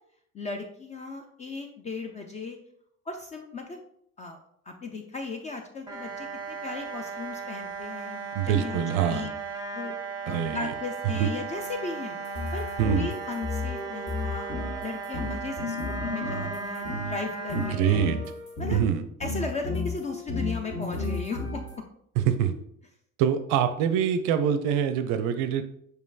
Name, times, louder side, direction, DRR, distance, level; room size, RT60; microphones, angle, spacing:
voice 1, 0.3-2.6 3.1-3.8 4.2-4.4 4.7-9.3 9.7-12.2 12.5-18.1 18.6-18.8 19.2-21.8, left 4 dB, 20° left, 4 dB, 0.3 m, -36 dB
sound 1, 5.9-17.7, right 4 dB, 10° right, 0.8 m, -36 dB
voice 2, 8.3-9.3 10.3-10.7 11.1-11.3 12.8-13.1 17.6-18.2 18.7-19.0 22.2-22.5 23.2-25.6, right 9 dB, 45° right, 10 dB, 0.5 m, -25 dB
sound 2, 12.2-17.2 17.5-18.9 19.2-21.7, left 2 dB, 40° left, 1.5 m, -33 dB
5.0 x 4.7 x 2.3 m, 0.70 s
figure-of-eight pair, 65°, 42 cm